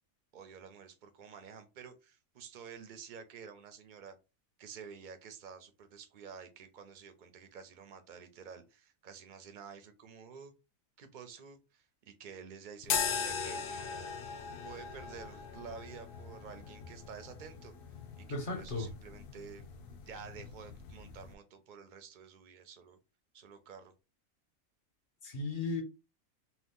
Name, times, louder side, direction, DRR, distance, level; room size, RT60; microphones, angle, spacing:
voice 1, 0.3-4.1 4.6-10.5 11.0-14.1 14.6-17.7 18.2-19.6 20.0-23.0 23.3-23.9, right 6 dB, 60° right, 0.5 m, -50 dB
sound 1, 12.8-21.3, left 6 dB, 85° left, 0.4 m, -40 dB
voice 2, 18.3-18.9 25.2-25.8, left 3 dB, 40° left, 1.0 m, -35 dB
2.8 x 2.2 x 3.5 m
omnidirectional pair, 1.5 m